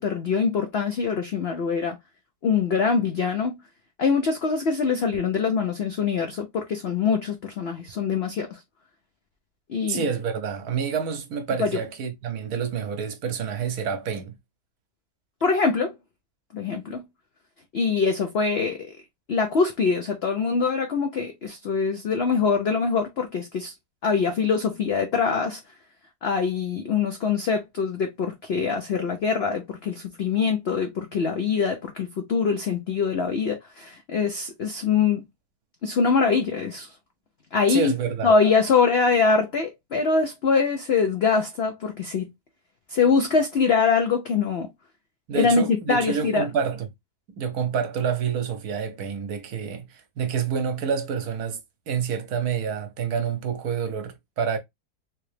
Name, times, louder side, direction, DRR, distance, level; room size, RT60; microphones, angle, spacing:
voice 1, 0.0-2.0 2.4-3.6 4.0-8.6 9.7-10.1 11.6-11.8 15.4-16.0 16.5-17.0 17.7-18.9 19.3-23.7 24.0-25.6 26.2-35.2 35.8-36.9 37.5-37.9 38.2-42.3 42.9-44.7 45.3-46.5, left 5 dB, 70° left, 0.6 m, -23 dB
voice 2, 9.9-14.4 37.7-38.3 45.3-46.9 47.4-51.6 51.9-54.6, right 6 dB, 70° right, 1.2 m, -28 dB
3.4 x 2.9 x 3.1 m
omnidirectional pair, 1.8 m